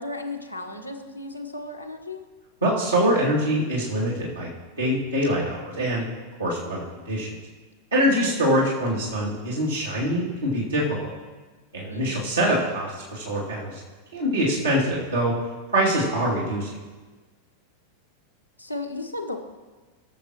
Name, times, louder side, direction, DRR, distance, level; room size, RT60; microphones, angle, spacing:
voice 1, 0.0-2.2 8.1-8.3 11.9-12.3 18.6-19.4, left 2 dB, 90° left, 2 dB, 0.9 m, -35 dB
voice 2, 2.6-4.5 4.8-6.1 6.4-7.3 7.9-11.1 11.7-13.8 14.1-15.3 15.7-16.8, equal, 80° right, -8 dB, 2.6 m, -24 dB
19.5 x 6.7 x 3.0 m, 1.3 s
figure-of-eight pair, 90°, 0 cm